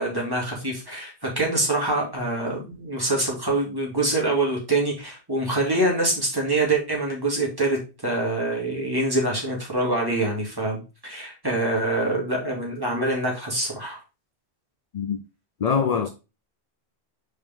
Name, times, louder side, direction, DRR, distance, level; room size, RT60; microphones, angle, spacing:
voice 1, 0.0-14.0, right 2 dB, 20° right, 2.7 m, -25 dB
voice 2, 15.6-16.1, left 6 dB, 45° left, 0.5 m, -23 dB
5.3 x 5.1 x 3.6 m
omnidirectional pair, 1.1 m